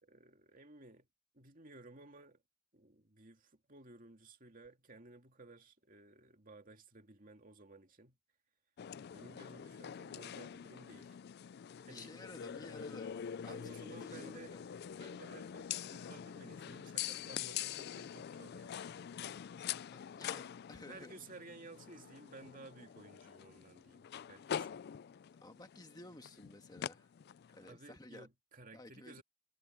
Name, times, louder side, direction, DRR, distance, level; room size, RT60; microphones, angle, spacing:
voice 1, 0.0-1.1 1.3-2.4 2.7-8.2 9.1-11.2 11.9-12.1 13.5-14.6 14.9-18.7 20.3-20.5 20.9-24.9 27.6-29.2, right 2 dB, 40° right, 2.5 m, -56 dB
sound 1, 8.8-27.7, left 9 dB, 50° left, 0.3 m, -45 dB
voice 2, 11.9-14.7 19.9-21.2 25.4-27.1 27.5-28.3 28.7-29.2, left 2 dB, 20° left, 1.5 m, -54 dB
head